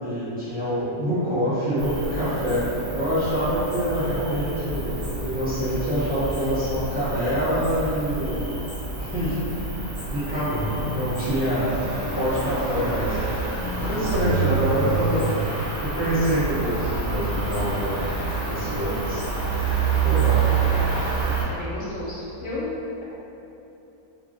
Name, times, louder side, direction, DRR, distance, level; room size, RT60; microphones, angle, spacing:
voice 1, 0.0-4.9 5.2-8.3 9.0-9.4 10.1-11.7 12.1-13.2 13.8-15.3 15.8-17.9 18.5-19.3 20.0-20.4, equal, 5° right, -13 dB, 0.8 m, -25 dB
Cricket, 1.8-21.4, right 4 dB, 55° right, 1.0 m, -28 dB
voice 2, 21.5-22.7, left 2 dB, 70° left, -7 dB, 0.9 m, -33 dB
2.8 x 2.6 x 2.6 m, 2.9 s
omnidirectional pair, 1.5 m